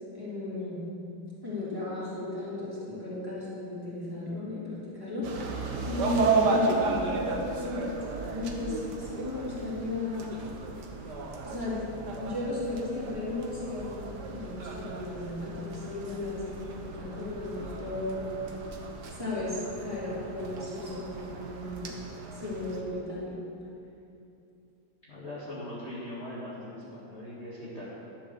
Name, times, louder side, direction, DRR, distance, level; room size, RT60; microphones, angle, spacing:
voice 1, 0.1-0.8 1.4-5.6 5.8-10.3 11.4-11.8 12.2-18.3 19.2-22.0 22.3-23.4, left 2 dB, 10° right, -10 dB, 3.2 m, -35 dB
sound 1, 5.2-22.8, right 3 dB, 60° right, 1.5 m, -34 dB
voice 2, 25.1-27.9, left 1 dB, 35° left, -9 dB, 1.8 m, -40 dB
11.0 x 7.0 x 6.8 m, 2.7 s
omnidirectional pair, 2.3 m